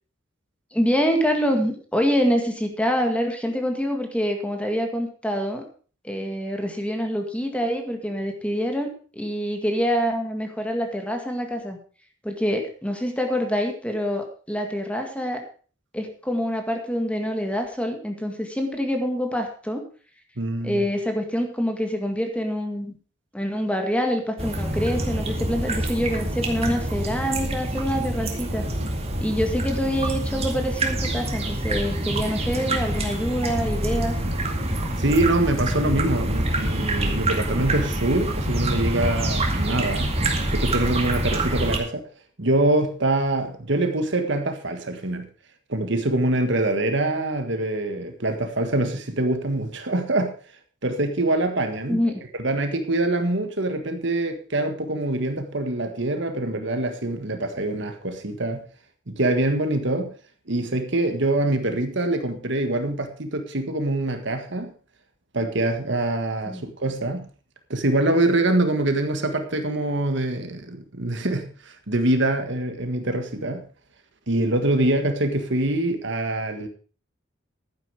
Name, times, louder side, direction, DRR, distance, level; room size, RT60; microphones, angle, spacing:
voice 1, 0.7-5.7 6.0-11.8 12.2-15.4 15.9-19.9 20.6-22.9 23.3-28.7 29.2-34.2 51.9-52.2 66.5-66.6, equal, 5° left, 1.9 m, -26 dB
voice 2, 20.4-20.9 35.0-40.1 40.5-42.1 42.4-45.3 45.7-50.3 50.8-52.0 52.4-58.6 59.1-60.1 60.5-64.7 65.3-67.2 67.7-73.6 74.3-76.7, right 2 dB, 60° right, 1.7 m, -24 dB
sound 1, 24.4-41.8, right 1 dB, 30° right, 2.2 m, -26 dB
11.5 x 9.8 x 4.9 m
head